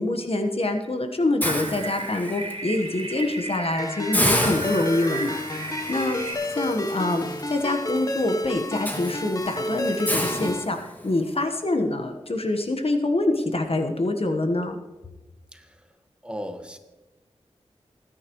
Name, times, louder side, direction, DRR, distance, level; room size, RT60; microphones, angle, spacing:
voice 1, 0.0-5.4 5.9-6.2 6.5-14.8, left 2 dB, 50° left, 5 dB, 1.3 m, -25 dB
Hiss, 1.4-2.5 3.0-3.2 3.5-3.6 4.1-11.2, equal, 15° left, 2.2 m, -30 dB
sound 1, 1.4-6.3, right 2 dB, 55° right, 3.1 m, -34 dB
Ringtone, 3.8-10.7, left 1 dB, 30° left, 0.9 m, -30 dB
voice 2, 15.5-15.9 16.2-16.8, equal, 10° right, 5 dB, 1.5 m, -36 dB
19.5 x 9.9 x 3.1 m, 1.1 s
cardioid pair, 45°, 12 cm